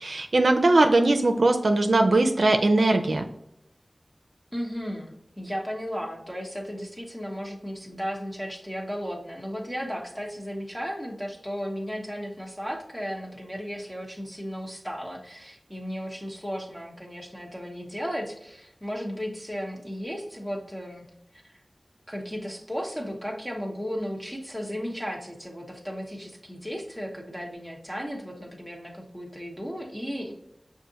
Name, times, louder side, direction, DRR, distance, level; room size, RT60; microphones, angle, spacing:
voice 1, 0.0-3.2, right 2 dB, 90° right, 5 dB, 0.4 m, -20 dB
voice 2, 4.5-21.0 21.4-21.6 22.1-30.3, equal, 5° left, -1 dB, 1.2 m, -35 dB
6.2 x 2.5 x 2.8 m, 0.78 s
wide cardioid pair, 50°, 0 cm